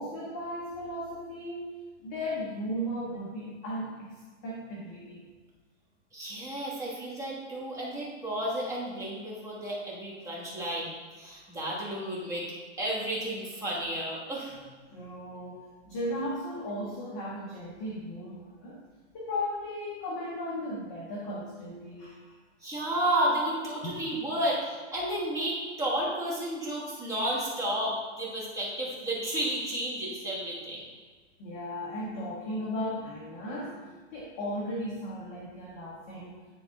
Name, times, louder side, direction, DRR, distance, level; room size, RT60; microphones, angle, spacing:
voice 1, 0.0-1.7 2.0-5.2 14.9-18.8 19.1-22.4 23.8-24.0 31.4-36.4, equal, 15° left, -4 dB, 0.4 m, -36 dB
voice 2, 6.1-10.9 11.2-12.5 12.8-14.6 22.6-30.8, right 1 dB, 10° right, -6 dB, 1.5 m, -32 dB
9.9 x 3.5 x 3.5 m, 1.5 s
hypercardioid pair, 155°, 36 cm